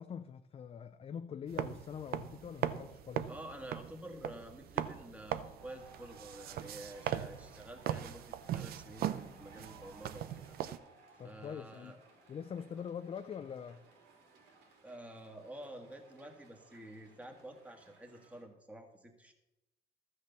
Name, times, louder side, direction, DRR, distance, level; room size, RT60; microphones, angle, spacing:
voice 1, 0.0-3.3 11.2-12.0 12.3-13.8, left 7 dB, 35° left, 0.5 m, -44 dB
sound 1, 1.5-10.8, right 11 dB, 65° right, 0.7 m, -40 dB
voice 2, 3.3-8.2 8.5-10.6 11.2-12.0 14.8-19.3, right 1 dB, 10° right, 1.8 m, -49 dB
sound 2, 5.6-18.5, right 3 dB, 90° right, 3.1 m, -61 dB
13.0 x 6.6 x 6.7 m
cardioid pair, 110°, 17 cm